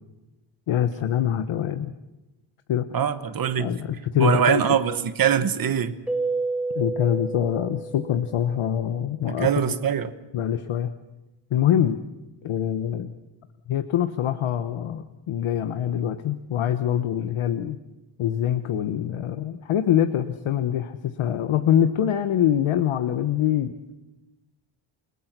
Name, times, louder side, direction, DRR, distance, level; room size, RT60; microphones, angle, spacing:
voice 1, 0.7-1.9 2.7-2.9 3.6-4.6 6.7-9.5 10.3-10.9 11.5-12.0 12.4-13.1 13.7-17.8 18.2-23.9, left 10 dB, 85° left, 8 dB, 1.2 m, -24 dB
voice 2, 2.9-3.7 4.2-5.9 9.3-10.1, right 8 dB, 45° right, 10 dB, 1.3 m, -23 dB
Keyboard (musical), 6.1-8.6, right 3 dB, 5° right, 2.5 m, -30 dB
30.0 x 19.0 x 6.1 m, 1.0 s
wide cardioid pair, 160°, 48 cm